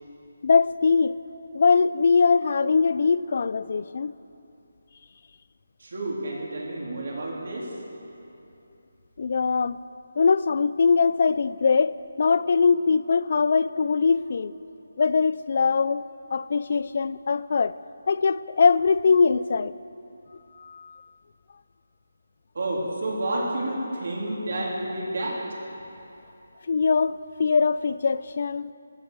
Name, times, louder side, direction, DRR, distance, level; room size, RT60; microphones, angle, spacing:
voice 1, 0.4-1.2 1.5-4.1 9.2-9.8 10.2-14.5 15.0-16.1 16.3-17.7 18.1-19.7 20.6-21.0 26.7-28.7, left 5 dB, 35° left, 0.3 m, -22 dB
voice 2, 5.8-7.7 22.5-25.4, right 1 dB, 50° right, 3.4 m, -30 dB
14.5 x 13.0 x 6.7 m
hypercardioid pair, 175°, 0 cm